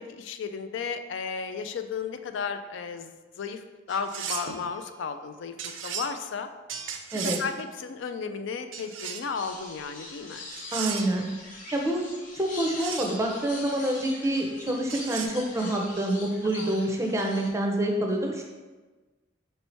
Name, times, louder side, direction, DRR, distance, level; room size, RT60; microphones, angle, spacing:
voice 1, 0.0-3.6 3.9-6.5 7.1-10.5 16.4-16.7, left 5 dB, 65° left, 8 dB, 0.4 m, -34 dB
sound 1, 3.9-4.6 5.6-6.1 6.7-7.5 8.7-9.4 10.5-11.2 12.6-13.2 14.9-15.3, right 7 dB, 75° right, 0.4 m, -35 dB
sound 2, 9.3-17.5, left 2 dB, 45° left, 0.7 m, -43 dB
voice 2, 10.7-11.3 11.7-12.1 12.3-18.4, right 1 dB, 15° right, 1 dB, 0.5 m, -27 dB
4.4 x 2.8 x 4.3 m, 1.3 s
head